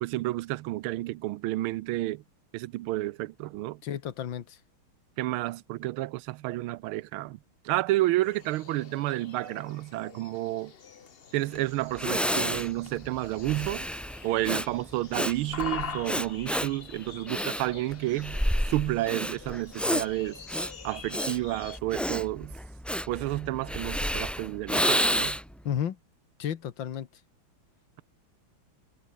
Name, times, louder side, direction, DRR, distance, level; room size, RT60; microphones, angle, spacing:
voice 1, 0.0-2.2 2.5-3.8 5.2-7.4 7.6-10.7 11.3-13.8 14.2-18.4 18.6-20.4 20.8-22.5 23.1-25.4, right 17 dB, 80° right, 1.5 m, -30 dB
voice 2, 3.8-4.6 19.9-20.0 25.7-26.0 26.4-27.1, left 9 dB, 65° left, 2.0 m, -32 dB
sound 1, 8.2-21.8, left 6 dB, 40° left, 0.8 m, -45 dB
Breathing, 11.5-11.6 12.0-25.6, equal, ahead, 1.1 m, -30 dB
omnidirectional pair, 2.3 m